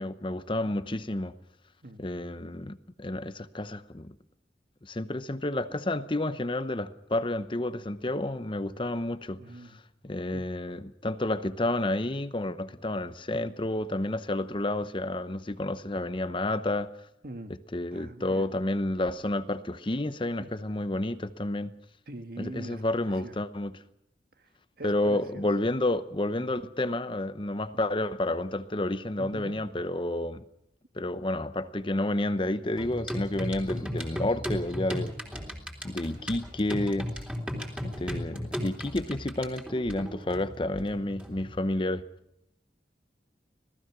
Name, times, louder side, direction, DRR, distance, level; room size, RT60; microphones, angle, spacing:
voice 1, 0.0-1.3 2.0-4.1 4.8-9.4 10.0-16.9 17.7-21.7 22.4-23.7 24.8-30.4 30.9-35.1 35.8-37.1 37.8-42.0, left 1 dB, 30° left, 0.8 m, -30 dB
voice 2, 9.4-9.8 10.3-10.4 17.2-17.5 17.9-18.5 20.4-20.5 22.1-22.8 23.2-23.3 24.4-24.5 24.8-25.4 29.2-29.6, right 1 dB, 55° right, 1.7 m, -43 dB
sound 1, 32.8-41.6, equal, 5° right, 3.3 m, -36 dB
26.0 x 18.5 x 6.1 m
head